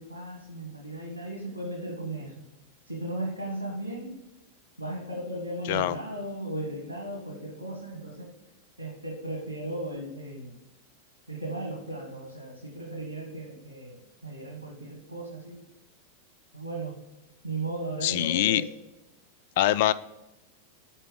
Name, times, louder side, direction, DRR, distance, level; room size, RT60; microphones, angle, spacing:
voice 1, 0.0-2.3 2.9-4.2 4.8-8.3 8.8-10.5 11.3-15.6 16.5-17.0 17.4-18.7, right 1 dB, 90° left, 0 dB, 1.1 m, -36 dB
voice 2, 18.0-18.6 19.6-19.9, left 13 dB, 50° left, 17 dB, 0.3 m, -23 dB
7.3 x 4.6 x 5.0 m, 1.0 s
figure-of-eight pair, 90°, 0 cm